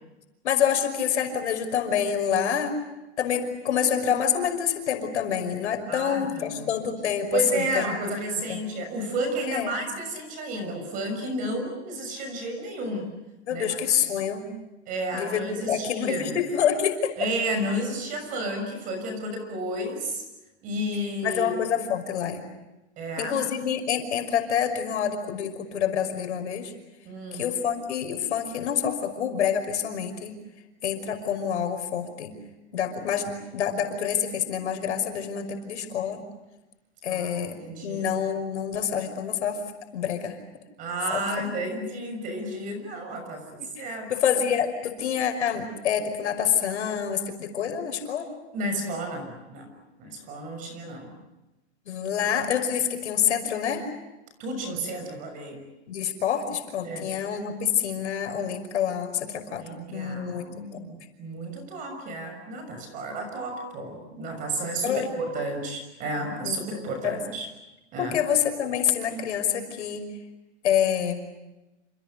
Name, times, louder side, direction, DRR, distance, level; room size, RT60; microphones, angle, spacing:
voice 1, 0.4-2.8 3.2-8.0 8.5-8.6 9.5-9.8 13.5-14.5 15.1-17.1 21.2-22.4 23.2-26.7 27.3-30.3 30.8-32.4 32.7-36.2 37.0-37.5 37.8-39.6 39.9-40.4 41.1-41.2 43.6-48.3 51.9-53.9 55.9-59.6 59.9-60.5 64.8-65.0 66.4-66.6 67.0-67.2 68.0-70.1 70.6-71.2, left 8 dB, 80° left, 6 dB, 5.7 m, -27 dB
voice 2, 5.9-6.7 7.3-13.1 13.5-13.8 14.9-16.4 17.2-20.2 20.6-21.5 23.0-23.3 27.0-27.5 37.1-38.2 40.8-44.1 48.5-49.7 50.0-51.1 54.4-55.6 56.8-57.1 59.6-67.5 67.9-68.2, right 1 dB, 25° right, 6 dB, 6.4 m, -32 dB
28.5 x 28.5 x 6.7 m, 1.0 s
supercardioid pair, 175°, 34 cm